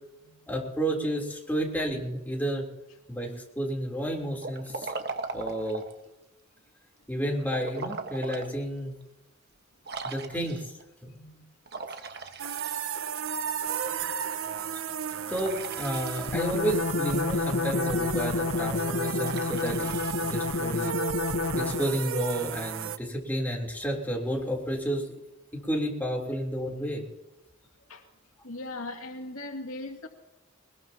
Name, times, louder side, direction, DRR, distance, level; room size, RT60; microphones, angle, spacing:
voice 1, 0.2-2.6 3.1-4.9 5.3-5.8 7.1-8.9 10.0-10.7 11.0-11.4 15.3-20.9 21.5-25.1 25.5-27.0, right 1 dB, 10° left, -2 dB, 3.6 m, -31 dB
Liquid, 4.4-6.0 7.4-8.5 9.0-9.1 9.8-10.8 11.7-13.3 15.3-16.7 19.2-20.9, right 3 dB, 50° right, 1.5 m, -39 dB
sound 1, 12.4-23.0, right 8 dB, 75° right, 0.8 m, -34 dB
sound 2, 16.3-22.0, left 3 dB, 60° left, 0.9 m, -29 dB
voice 2, 28.4-30.1, left 2 dB, 85° left, 2 dB, 2.4 m, -38 dB
23.5 x 21.0 x 3.0 m, 0.97 s
head